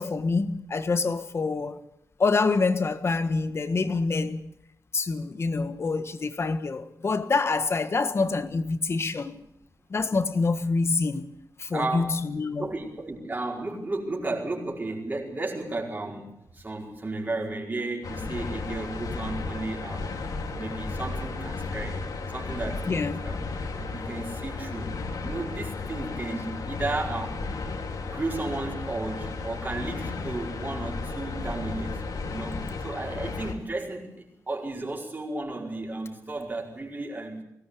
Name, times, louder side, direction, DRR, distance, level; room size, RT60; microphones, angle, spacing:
voice 1, 0.0-1.8 2.2-4.4 4.9-9.4 9.9-12.7 22.9-23.2, left 4 dB, 40° left, 1.5 m, -26 dB
voice 2, 11.7-12.1 12.6-22.0 22.3-23.4 23.8-27.5 28.1-37.4, right 2 dB, 25° right, 5.1 m, -34 dB
sound 1, 18.0-33.5, left 3 dB, 75° left, 3.5 m, -34 dB
21.5 x 18.5 x 8.5 m
wide cardioid pair, 130°, 7 cm